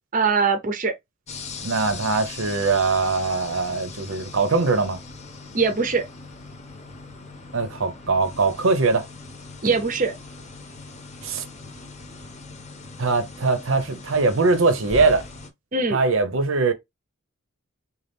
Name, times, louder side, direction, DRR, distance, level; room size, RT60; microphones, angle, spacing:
voice 1, 0.1-0.9 5.5-6.1 9.6-10.1 15.7-16.0, right 4 dB, 40° right, 0.6 m, -22 dB
sound 1, 1.3-15.5, left 3 dB, 30° left, 0.8 m, -40 dB
voice 2, 1.6-5.0 7.5-9.0 11.2-11.4 13.0-15.2 15.9-16.7, right 3 dB, 75° right, 0.7 m, -21 dB
3.9 x 2.4 x 3.4 m
head